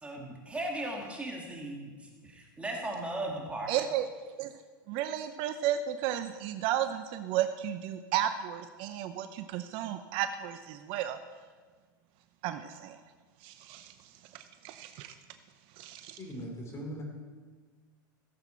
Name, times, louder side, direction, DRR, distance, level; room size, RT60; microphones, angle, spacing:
voice 1, 0.0-3.7, right 1 dB, 10° right, -1 dB, 2.3 m, -37 dB
voice 2, 3.7-4.0 4.4-4.5 4.9-11.2 12.4-13.0 13.4-13.9 14.3-15.1 15.8-16.2, right 11 dB, 50° right, 10 dB, 0.7 m, -33 dB
voice 3, 16.2-17.0, equal, 25° left, 0 dB, 3.8 m, -40 dB
16.0 x 8.1 x 4.5 m, 1.5 s
hypercardioid pair, 110°, 11 cm